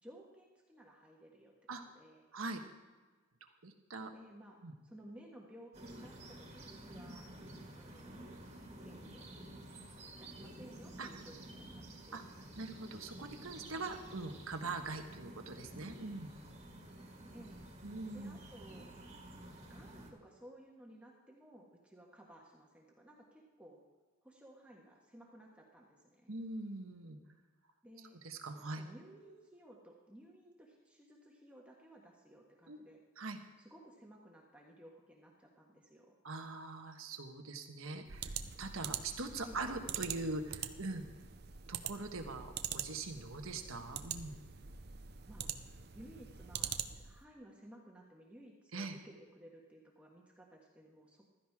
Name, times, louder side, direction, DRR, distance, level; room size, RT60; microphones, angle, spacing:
voice 1, 0.0-1.5 1.9-2.3 4.1-4.6 4.8-7.3 7.8-8.3 8.7-9.3 10.2-12.2 17.3-17.6 18.1-18.9 19.7-23.8 24.2-26.3 27.8-28.2 28.6-33.0 33.6-36.1 39.4-39.6 45.3-45.5 45.9-51.3, right 1 dB, 5° right, -2 dB, 1.5 m, -57 dB
voice 2, 2.3-2.6 3.6-4.1 4.6-4.7 11.0-11.1 12.1-12.2 12.6-16.3 17.8-18.3 26.3-27.2 28.2-28.8 32.7-32.8 33.2-33.4 36.2-41.0 41.7-44.4 48.7-49.0, right 3 dB, 80° right, 5 dB, 1.4 m, -42 dB
sound 1, 5.7-20.1, right 1 dB, 30° right, 2.0 m, -51 dB
sound 2, 38.1-47.2, right 8 dB, 50° right, 0.7 m, -44 dB
15.5 x 13.5 x 3.6 m, 1.3 s
head